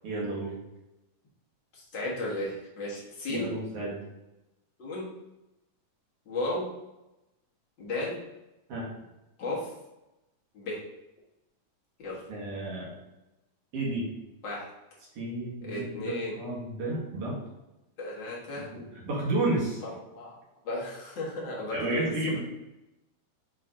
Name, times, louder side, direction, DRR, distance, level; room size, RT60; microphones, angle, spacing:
voice 1, 0.0-0.5 3.3-4.0 8.7-8.9 12.3-12.9 13.7-14.1 15.2-17.4 18.7-19.8 21.7-22.4, right 2 dB, 50° right, -4 dB, 2.4 m, -31 dB
voice 2, 1.7-3.5 4.8-5.1 6.3-6.7 7.8-8.2 9.4-9.7 10.5-10.8 12.0-12.2 14.4-14.7 15.6-16.4 18.0-18.7 19.8-20.4 20.6-22.4, left 2 dB, 40° left, -5 dB, 2.0 m, -34 dB
8.9 x 3.2 x 3.8 m, 0.95 s
omnidirectional pair, 3.7 m